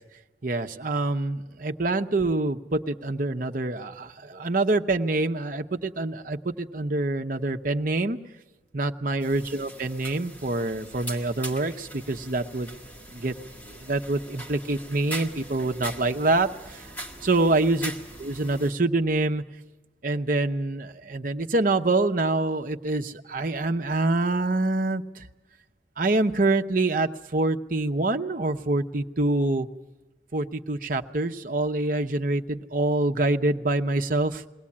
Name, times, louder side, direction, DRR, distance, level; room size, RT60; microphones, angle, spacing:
voice 1, 0.4-8.2 8.7-12.7 13.1-13.3 13.8-16.9 17.2-17.9 18.2-19.4 20.0-25.2 26.0-29.7 30.3-34.4, right 2 dB, 45° right, 5 dB, 0.8 m, -26 dB
sound 1, 9.2-18.7, right 1 dB, 10° left, 1.7 m, -41 dB
22.0 x 17.5 x 8.6 m, 1.2 s
head